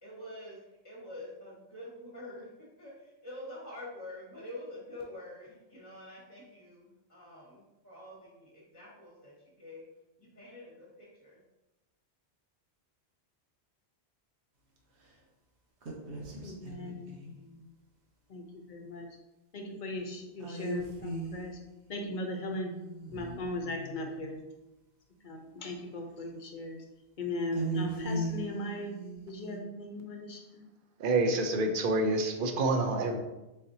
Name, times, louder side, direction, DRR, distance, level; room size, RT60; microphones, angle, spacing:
voice 1, 0.0-9.8 10.2-11.4, left 1 dB, 15° left, -7 dB, 1.2 m, -47 dB
sound 1, 15.8-17.3 20.4-21.6 22.6-24.2 27.5-29.6, right 2 dB, 80° right, 1.1 m, -37 dB
voice 2, 16.4-17.2 18.3-19.1 19.5-21.5 21.9-22.7 23.1-24.4 25.2-26.8 27.2-28.9 29.3-30.4, left 2 dB, 50° left, 2 dB, 0.8 m, -38 dB
voice 3, 31.0-33.2, right 2 dB, 60° right, 5 dB, 0.7 m, -27 dB
4.2 x 4.1 x 2.7 m, 0.99 s
omnidirectional pair, 1.1 m